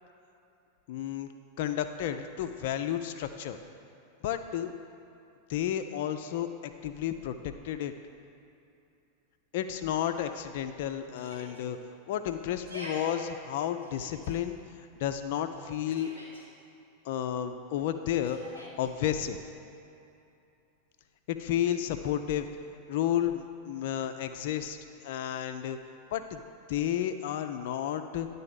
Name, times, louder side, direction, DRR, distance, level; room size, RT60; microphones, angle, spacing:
voice 1, 0.9-1.3 1.6-3.6 4.2-4.7 5.5-7.3 7.6-7.9 9.5-11.8 12.1-14.6 15.0-16.1 17.0-19.4 21.3-22.5 22.9-24.8 25.0-25.8 26.1-26.4 26.7-28.3, left 10 dB, 50° left, 8 dB, 0.4 m, -32 dB
Yell, 11.1-11.6 12.5-13.1 13.8-14.3 15.5-16.4 18.2-18.9, equal, 90° right, 1.9 m, -45 dB
10.5 x 4.1 x 5.2 m, 2.7 s
figure-of-eight pair, 90°, 0 cm